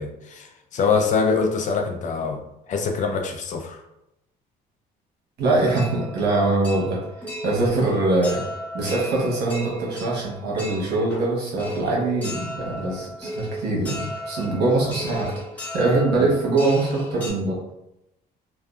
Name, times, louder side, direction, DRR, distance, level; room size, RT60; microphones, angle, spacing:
voice 1, 0.0-2.4 2.7-3.8 14.8-14.9 16.2-16.3, left 5 dB, 50° left, 4 dB, 0.4 m, -24 dB
voice 2, 5.4-7.0 7.4-8.4 8.7-15.3 15.7-17.6, right 2 dB, 75° right, -3 dB, 1.0 m, -23 dB
sound 1, 5.6-17.3, equal, 10° left, 1.1 m, -36 dB
2.7 x 2.2 x 2.3 m, 0.85 s
cardioid pair, 110°, 17 cm